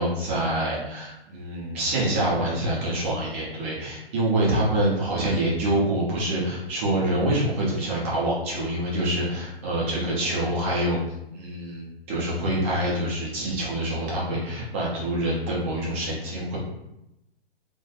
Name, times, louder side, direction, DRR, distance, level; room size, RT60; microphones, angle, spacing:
voice 1, 0.0-11.0 11.3-16.6, right 1 dB, 15° right, -6 dB, 0.3 m, -26 dB
3.0 x 2.1 x 2.4 m, 0.88 s
figure-of-eight pair, 115°, 32 cm